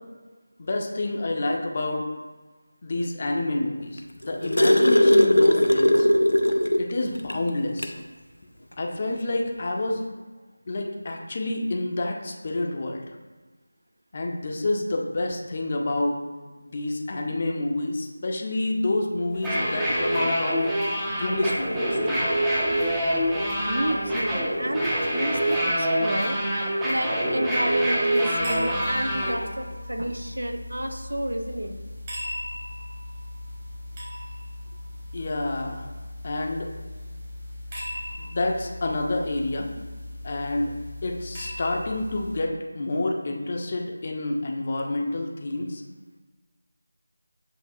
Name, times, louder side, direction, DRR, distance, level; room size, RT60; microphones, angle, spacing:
voice 1, 0.6-2.1 2.8-6.1 6.8-7.9 8.8-10.0 10.7-13.0 14.1-16.2 16.6-20.6 21.1-22.2 35.1-35.8 36.2-36.7 38.2-39.7 40.2-40.7 41.0-45.8, left 2 dB, 35° left, 1 dB, 0.6 m, -28 dB
sound 1, 4.0-6.9 7.3-7.4 7.8-8.0 9.1-9.2, left 1 dB, 90° left, 0.5 m, -18 dB
sound 2, 19.3-29.3, equal, 5° right, 0.6 m, -25 dB
voice 2, 23.7-31.7, right 1 dB, 75° right, 5 dB, 0.6 m, -31 dB
sound 3, 28.4-42.4, left 1 dB, 25° right, 1.2 m, -37 dB
7.5 x 2.7 x 2.6 m, 1.3 s
figure-of-eight pair, 165°, 0 cm